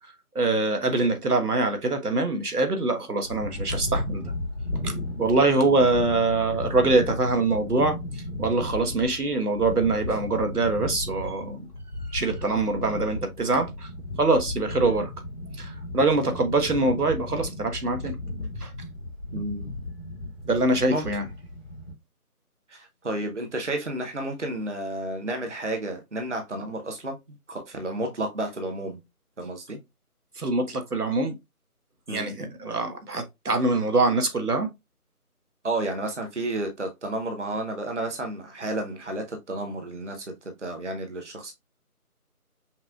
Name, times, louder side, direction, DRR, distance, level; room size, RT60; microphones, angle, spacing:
voice 1, 0.3-4.3 4.8-4.9 5.2-11.7 12.1-13.9 14.2-15.1 15.6-18.2 18.6-18.7 20.5-21.2 30.4-31.3 32.1-34.7, right 3 dB, 90° right, 1.4 m, -24 dB
sound 1, 3.2-21.9, left 1 dB, 40° left, 1.8 m, -35 dB
voice 2, 19.3-19.7 20.9-21.0 22.7-27.2 27.5-29.0 29.4-29.8 32.1-32.5 35.6-41.5, right 1 dB, 50° right, 0.9 m, -31 dB
5.8 x 3.1 x 2.3 m
figure-of-eight pair, 180°, 44 cm